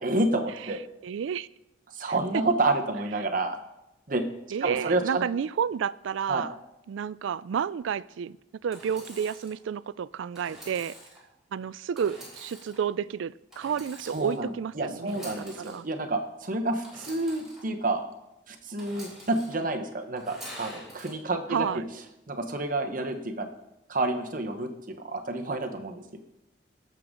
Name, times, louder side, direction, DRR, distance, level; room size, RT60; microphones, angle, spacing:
voice 1, 0.0-0.8 1.9-3.6 4.1-4.3 4.6-5.2 6.3-6.4 14.0-14.5 14.7-18.1 18.5-21.8 22.3-23.5 23.9-26.2, right 2 dB, 45° right, 5 dB, 1.0 m, -29 dB
voice 2, 1.0-1.5 2.1-2.4 4.5-6.5 6.9-8.4 8.6-11.0 11.5-15.9 21.5-21.8, right 7 dB, 80° right, 19 dB, 0.3 m, -31 dB
Engine / Sawing, 8.7-9.5 10.3-11.2 11.9-12.8 13.5-14.4 15.0-15.8 16.8-17.6 18.8-19.5 20.2-21.1, equal, ahead, 4.1 m, -46 dB
17.5 x 6.8 x 3.7 m, 0.90 s
head